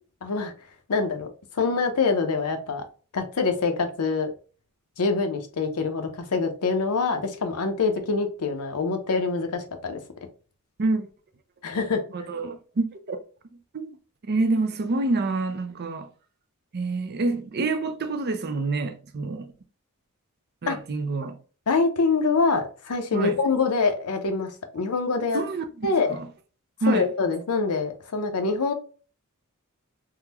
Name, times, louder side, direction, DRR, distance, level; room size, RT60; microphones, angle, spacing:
voice 1, 0.2-0.5 0.9-1.3 1.5-2.8 3.1-4.3 5.0-10.0 11.6-12.0 20.7-20.8 21.7-25.4 25.8-26.1 26.9-28.7, left 4 dB, 80° left, 0.7 m, -25 dB
voice 2, 12.1-13.2 13.7-14.0 14.2-16.1 16.7-19.5 20.6-21.4 23.1-23.4 25.3-26.3 26.8-27.1, right 3 dB, 45° right, 0.5 m, -27 dB
3.6 x 2.1 x 2.9 m
head